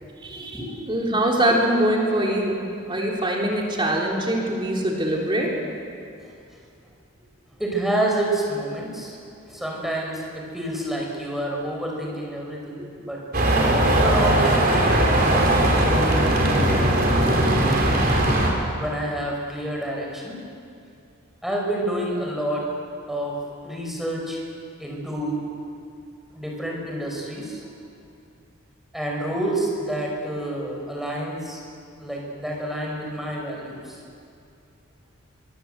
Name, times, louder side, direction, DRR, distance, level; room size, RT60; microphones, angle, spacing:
voice 1, 0.4-0.7 6.2-6.3 7.6-9.2 9.5-15.5 15.8-17.8 18.8-20.4 21.4-22.7 23.1-23.4 23.6-24.4 24.8-25.4 26.3-27.7 28.9-31.6 32.0-34.0, right 1 dB, ahead, -2 dB, 5.3 m, -29 dB
voice 2, 0.9-2.6 2.9-5.5 12.8-12.9, right 1 dB, 25° right, -2 dB, 3.3 m, -23 dB
sound 1, 13.3-18.5, right 1 dB, 45° right, 4.6 m, -19 dB
24.5 x 23.0 x 8.0 m, 2.5 s
head